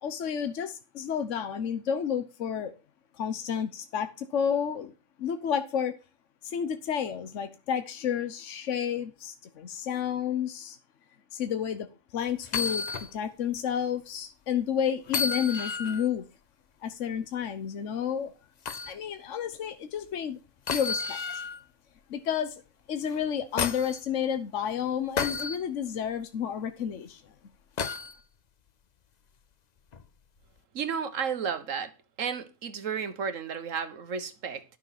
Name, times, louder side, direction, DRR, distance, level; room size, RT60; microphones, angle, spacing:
voice 1, 0.0-2.7 3.1-4.9 5.2-5.9 6.4-10.8 11.3-11.9 12.1-12.9 13.1-16.2 16.8-18.3 18.9-20.4 20.7-21.2 22.1-22.6 22.9-27.3, left 8 dB, 75° left, 1.2 m, -31 dB
sound 1, 12.4-13.1 13.6-13.7 15.1-16.1 18.6-18.9 20.7-21.6 23.1-24.0 25.2-25.6 27.8-28.1 29.9-30.1, left 5 dB, 45° left, 0.6 m, -31 dB
voice 2, 30.7-31.9 32.2-34.6, right 6 dB, 80° right, 1.6 m, -32 dB
11.0 x 6.4 x 5.8 m
omnidirectional pair, 1.3 m